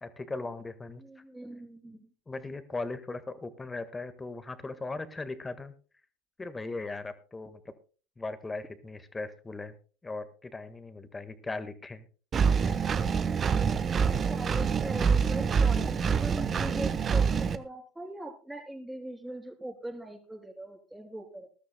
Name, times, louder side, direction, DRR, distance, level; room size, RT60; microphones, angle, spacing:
voice 1, 0.0-1.2 2.3-5.7 6.4-7.7 8.2-9.8 10.0-12.1 12.6-12.8, left 3 dB, 15° left, 12 dB, 1.6 m, -38 dB
voice 2, 1.0-2.1 14.3-21.5, right 1 dB, 5° right, 3 dB, 3.2 m, -41 dB
Engine, 12.3-17.6, right 6 dB, 35° right, 1.0 m, -26 dB
20.0 x 12.5 x 2.2 m, 0.37 s
hypercardioid pair, 80°, 0 cm